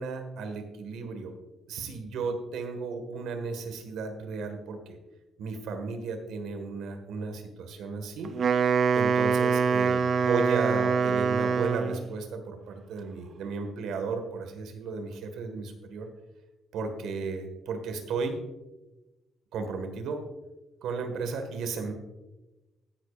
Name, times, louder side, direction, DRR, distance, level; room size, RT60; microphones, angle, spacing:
voice 1, 0.0-1.3 1.7-5.0 5.4-8.3 8.9-16.1 16.7-18.4 19.5-20.2 20.8-21.9, right 4 dB, 85° right, 7 dB, 1.6 m, -34 dB
Wind instrument woodwind instrument, 8.2-12.1, right 5 dB, 55° right, 0.6 m, -24 dB
15.5 x 10.0 x 2.5 m, 1.1 s
cardioid pair, 90°, 0 cm